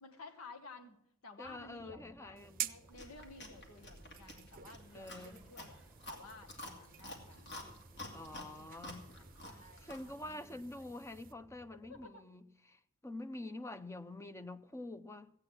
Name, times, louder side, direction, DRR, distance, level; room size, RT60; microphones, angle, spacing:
voice 1, 0.0-1.0 1.2-5.8 6.1-7.5 8.3-10.8 11.9-12.2, left 3 dB, 85° left, 1.2 m, -55 dB
voice 2, 1.4-2.7 4.9-5.4 8.1-9.1 9.8-15.3, left 2 dB, 15° left, 0.6 m, -47 dB
sound 1, 1.4-12.1, right 1 dB, 10° right, 0.9 m, -61 dB
sound 2, 2.4-11.3, right 13 dB, 40° right, 0.6 m, -50 dB
Chewing mastication, 2.9-10.1, left 1 dB, 55° left, 2.4 m, -50 dB
15.5 x 8.8 x 6.1 m
head